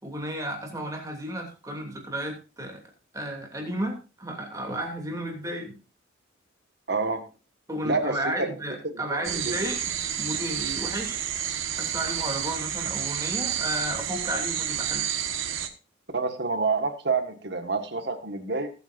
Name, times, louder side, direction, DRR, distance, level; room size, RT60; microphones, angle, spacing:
voice 1, 0.0-2.8 3.1-5.8 7.7-9.8 10.2-11.2 11.8-15.1, right 1 dB, 15° right, 1 dB, 2.8 m, -33 dB
voice 2, 6.9-7.2 7.8-8.5 8.8-9.6 16.1-18.7, right 4 dB, 55° right, 6 dB, 1.7 m, -28 dB
sound 1, 9.2-15.7, right 9 dB, 85° right, 1.4 m, -30 dB
20.5 x 8.4 x 2.6 m, 0.33 s
head